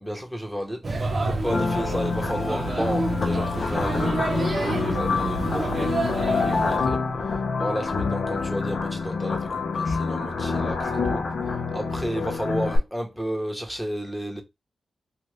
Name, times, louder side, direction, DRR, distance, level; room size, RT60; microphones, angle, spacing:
voice 1, 0.0-4.2 4.6-5.9 6.2-14.4, equal, ahead, 0.9 m, -32 dB
Male speech man speaking / Child speech kid speaking / Chatter, 0.8-6.8, right 2 dB, 50° right, 0.7 m, -29 dB
sound 1, 1.5-12.8, left 4 dB, 65° left, 0.6 m, -27 dB
2.7 x 2.5 x 3.2 m
cardioid pair, 65°, 0 cm